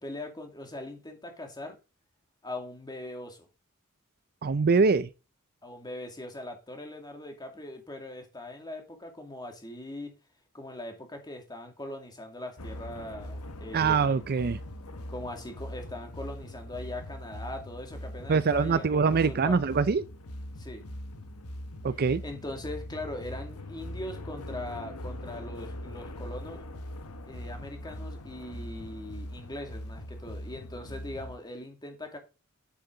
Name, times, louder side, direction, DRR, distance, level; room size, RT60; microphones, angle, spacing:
voice 1, 0.0-1.8 2.4-3.4 5.6-10.1 10.5-14.2 15.1-19.6 20.6-20.8 21.9-26.6 27.2-32.2, left 1 dB, 20° left, 2.4 m, -41 dB
voice 2, 4.4-5.1 13.7-14.6 18.3-20.0 21.8-22.2, right 5 dB, 45° right, 0.5 m, -24 dB
sound 1, 12.6-31.4, left 1 dB, 90° left, 1.3 m, -41 dB
9.6 x 8.2 x 3.9 m
head